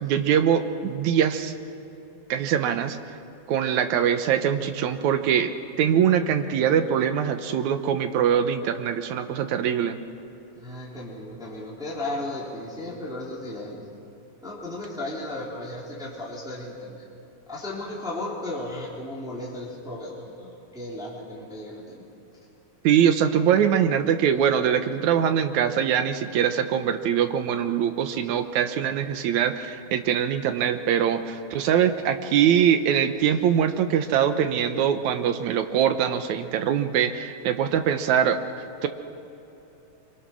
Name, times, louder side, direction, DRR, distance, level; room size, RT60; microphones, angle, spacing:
voice 1, 0.0-1.5 2.3-3.0 3.5-5.5 5.8-10.0 22.8-38.4 38.8-38.9, right 8 dB, 70° right, 8 dB, 2.2 m, -23 dB
voice 2, 10.5-13.9 14.4-17.0 17.5-22.0 28.0-28.1 30.6-30.7 31.7-31.8, left 1 dB, ahead, -5 dB, 3.3 m, -35 dB
25.5 x 22.0 x 6.3 m, 3.0 s
omnidirectional pair, 3.8 m